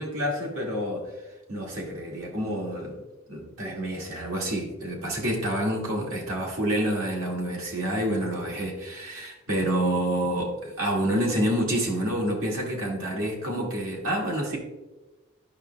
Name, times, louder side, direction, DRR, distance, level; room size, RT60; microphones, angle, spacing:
voice 1, 0.0-3.0 3.3-14.6, right 1 dB, 75° right, -2 dB, 1.8 m, -28 dB
11.5 x 5.7 x 2.2 m, 1.1 s
head